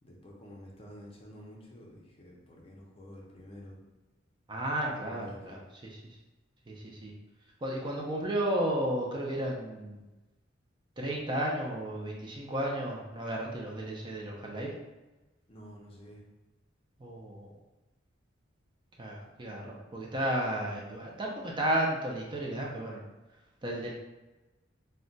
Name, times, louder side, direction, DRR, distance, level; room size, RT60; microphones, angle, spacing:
voice 1, 0.0-3.8 5.1-5.6 15.5-16.2, equal, 30° left, -2 dB, 0.5 m, -50 dB
voice 2, 4.5-6.0 6.7-7.1 7.6-10.0 11.0-14.7 17.0-17.5 19.0-23.0 23.6-23.9, right 1 dB, 25° right, -2 dB, 0.4 m, -33 dB
2.2 x 2.1 x 3.8 m, 1.1 s
head